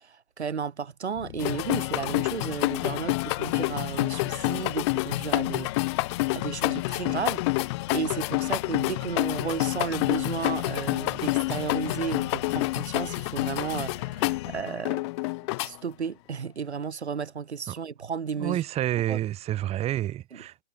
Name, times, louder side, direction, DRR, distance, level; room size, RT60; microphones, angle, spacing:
voice 1, 0.0-5.9 6.3-15.0 15.6-18.6 19.1-19.2, right 6 dB, 65° right, 5.7 m, -33 dB
sound 1, 1.1-14.6, left 11 dB, 45° left, 7.1 m, -42 dB
sound 2, 1.4-15.7, left 24 dB, 25° left, 1.1 m, -28 dB
voice 2, 18.4-20.6, right 13 dB, 15° right, 4.5 m, -29 dB
figure-of-eight pair, 135°, 35 cm